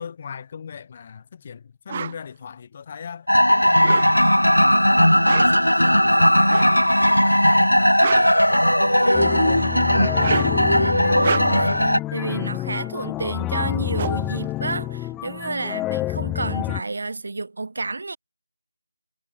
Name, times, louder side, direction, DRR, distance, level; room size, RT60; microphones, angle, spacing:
voice 1, 0.0-4.8 5.4-8.1 8.4-9.5 10.0-10.5, left 7 dB, 20° left, 1.8 m, -38 dB
sound 1, 1.9-2.2 3.7-4.4 5.1-5.7 6.5-6.8 7.7-9.0 10.0-10.7 11.1-11.8 13.3-13.4 13.6-15.3, right 7 dB, 20° right, 1.2 m, -31 dB
sound 2, 3.3-12.0, equal, 80° left, 0.7 m, -17 dB
sound 3, 9.1-16.8, left 16 dB, 5° left, 0.5 m, -28 dB
voice 2, 11.0-18.2, right 3 dB, 40° right, 0.7 m, -30 dB
figure-of-eight pair, 165°, 0 cm